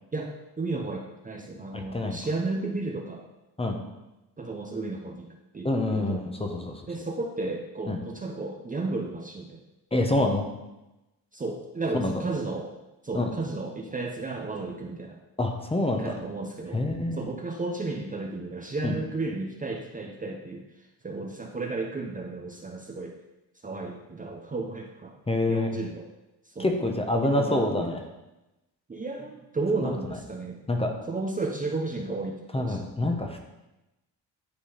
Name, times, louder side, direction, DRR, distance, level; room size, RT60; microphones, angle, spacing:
voice 1, 0.1-3.2 4.4-5.3 5.5-6.2 6.9-9.6 11.3-12.7 13.0-15.2 16.0-16.8 17.1-20.6 21.0-23.2 23.6-25.1 25.5-26.1 26.5-26.7 27.2-27.9 28.9-30.6 31.1-32.9, right 3 dB, 20° right, 1 dB, 0.8 m, -33 dB
voice 2, 1.7-2.2 3.6-3.8 5.6-6.9 7.9-8.0 9.9-10.4 11.9-12.1 13.1-13.3 15.4-16.2 16.7-17.2 18.8-18.9 25.3-25.8 26.6-28.0 29.8-30.0 30.7-30.9 32.5-33.4, left 2 dB, 15° left, 4 dB, 1.0 m, -26 dB
10.0 x 3.8 x 5.0 m, 1.0 s
cardioid pair, 100°, 41 cm